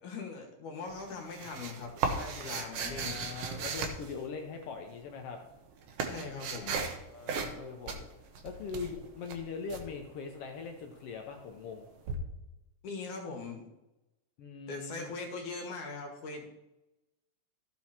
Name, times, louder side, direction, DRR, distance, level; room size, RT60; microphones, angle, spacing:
voice 1, 0.0-3.4 6.0-6.8 12.8-13.7 14.7-16.5, left 4 dB, 65° left, 2 dB, 2.9 m, -41 dB
sound 1, 0.9-4.7 5.4-7.0 7.3-7.6 7.9-9.8 12.1-12.2, right 5 dB, 65° right, 1.6 m, -36 dB
voice 2, 2.4-5.4 7.1-8.1 8.4-11.8 14.4-15.1, left 5 dB, 85° left, 3 dB, 1.3 m, -41 dB
14.5 x 6.2 x 4.2 m, 0.96 s
omnidirectional pair, 3.9 m